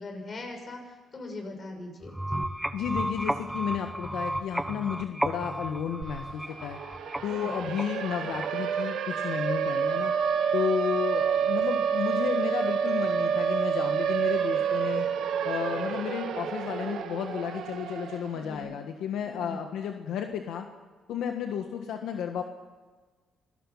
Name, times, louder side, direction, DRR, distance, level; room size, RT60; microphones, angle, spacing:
voice 1, 0.0-2.4 7.3-7.5 18.3-18.7 19.2-19.6, left 2 dB, 40° left, 3 dB, 6.6 m, -41 dB
sound 1, 2.0-8.8, right 1 dB, 5° right, 1.1 m, -34 dB
voice 2, 2.7-6.8 7.2-10.1 10.5-15.1 15.4-20.7 21.1-22.4, left 8 dB, 80° left, 5 dB, 1.5 m, -32 dB
Siren, 6.0-6.1 6.4-18.5, right 7 dB, 80° right, 2.1 m, -28 dB
26.0 x 17.5 x 5.8 m, 1.4 s
cardioid pair, 90°, 0 cm